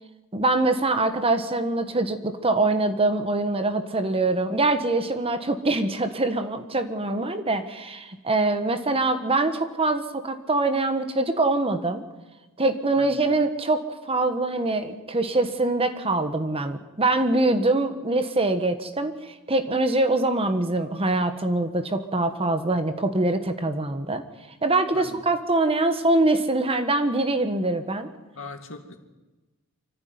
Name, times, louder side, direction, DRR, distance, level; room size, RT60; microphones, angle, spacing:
voice 1, 0.3-12.0 12.6-24.2 24.6-28.1, right 2 dB, 25° right, 9 dB, 1.4 m, -24 dB
voice 2, 28.4-29.0, left 3 dB, 65° left, 6 dB, 2.4 m, -40 dB
24.5 x 14.5 x 9.5 m, 1.1 s
head